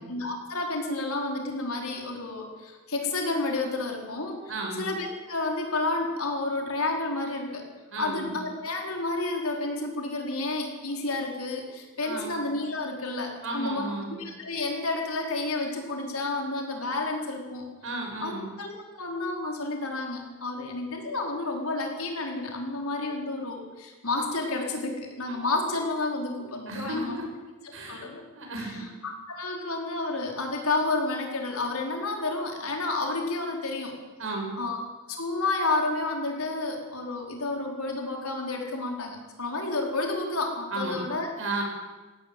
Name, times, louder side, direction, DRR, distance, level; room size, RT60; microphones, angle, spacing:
voice 1, 0.0-7.6 8.0-13.9 14.2-17.7 18.2-27.2 27.9-28.2 28.6-33.9 34.6-34.8 35.1-41.3, left 2 dB, 80° left, 1 dB, 4.6 m, -30 dB
voice 2, 4.5-4.9 7.9-8.4 12.0-12.4 13.4-14.2 17.8-18.5 26.7-27.2 27.7-28.0 28.3-28.9 34.2-34.5 40.7-41.0 41.4-41.6, right 2 dB, 65° right, 1 dB, 6.8 m, -33 dB
17.5 x 17.0 x 9.1 m, 1.3 s
head